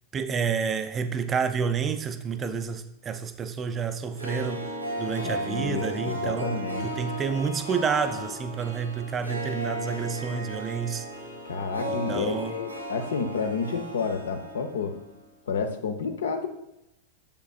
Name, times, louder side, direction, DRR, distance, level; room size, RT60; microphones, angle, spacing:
voice 1, 0.1-4.7 5.0-6.6 6.8-11.1 11.9-12.5, right 6 dB, 25° right, 0.4 m, -29 dB
Harp, 4.0-15.0 15.3-15.4, equal, 90° right, 1.5 m, -35 dB
voice 2, 5.2-6.9 11.4-14.9 15.5-16.5, left 5 dB, 65° left, 0.7 m, -30 dB
6.8 x 6.8 x 2.4 m
figure-of-eight pair, 90°, 0 cm